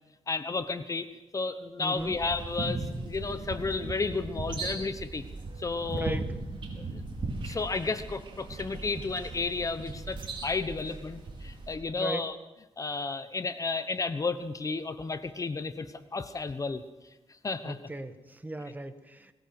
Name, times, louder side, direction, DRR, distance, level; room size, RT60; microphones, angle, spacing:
voice 1, 0.3-1.1 1.3-5.2 5.6-6.2 6.8-7.0 7.4-12.4 12.8-16.8 17.4-17.8, left 4 dB, 35° left, 11 dB, 1.1 m, -32 dB
voice 2, 1.8-2.2 5.9-6.3 11.9-12.2 17.6-19.3, right 2 dB, 15° right, 9 dB, 1.5 m, -37 dB
sound 1, 2.0-11.7, right 3 dB, 55° right, 5.1 m, -38 dB
22.5 x 19.0 x 6.1 m, 1.1 s
cardioid pair, 110°, 10 cm